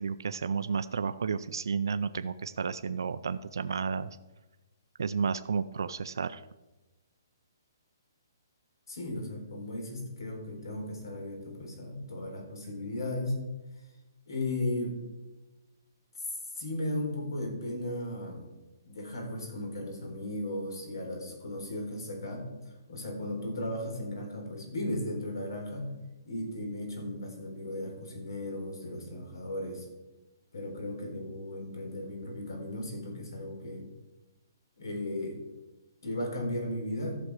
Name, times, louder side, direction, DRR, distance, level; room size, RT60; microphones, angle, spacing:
voice 1, 0.0-4.1 5.0-6.4, right 5 dB, 85° right, 12 dB, 0.5 m, -32 dB
voice 2, 8.9-13.4 14.3-15.0 16.5-18.4 18.8-26.0 26.3-29.9 30.5-33.9 34.8-35.4 36.0-37.2, left 1 dB, 90° left, 2 dB, 4.0 m, -36 dB
14.0 x 6.2 x 4.8 m, 1.1 s
hypercardioid pair, 170°, 2 cm